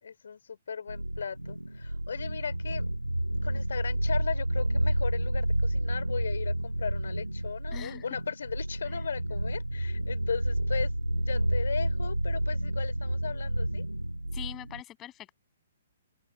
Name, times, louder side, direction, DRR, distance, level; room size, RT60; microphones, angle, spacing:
voice 1, 0.0-2.9 3.4-13.8, left 6 dB, 60° left, 4.0 m, -37 dB
sound 1, 0.9-14.8, right 1 dB, 85° right, 3.8 m, -30 dB
voice 2, 7.7-8.1 14.3-15.3, left 13 dB, 20° left, 7.3 m, -42 dB
open air
figure-of-eight pair, 120°, 0 cm